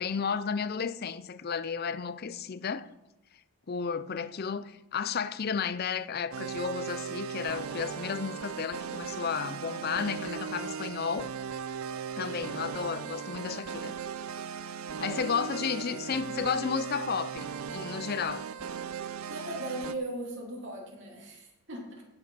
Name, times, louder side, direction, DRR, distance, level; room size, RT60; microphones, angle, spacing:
voice 1, 0.0-2.9 3.7-11.3 12.2-13.9 15.0-18.5, left 6 dB, 45° left, 0.4 m, -33 dB
sound 1, 6.3-19.9, right 7 dB, 75° right, 0.6 m, -38 dB
voice 2, 12.2-12.6 14.8-16.4 19.3-22.0, right 1 dB, 55° right, 3.3 m, -40 dB
16.0 x 5.3 x 5.7 m
head